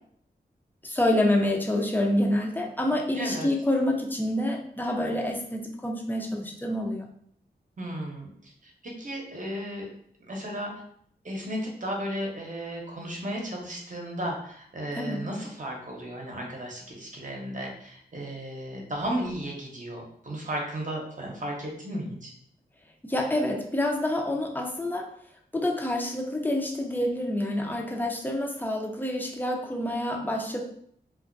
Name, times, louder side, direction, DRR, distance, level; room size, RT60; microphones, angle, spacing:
voice 1, 0.8-7.1 15.0-15.3 23.0-25.1 25.5-30.6, left 1 dB, 10° left, 0 dB, 0.5 m, -27 dB
voice 2, 3.2-3.5 7.8-9.9 10.3-10.7 11.2-22.3, equal, 45° right, -1 dB, 0.8 m, -34 dB
2.3 x 2.1 x 2.5 m, 0.65 s
cardioid pair, 45°, 18 cm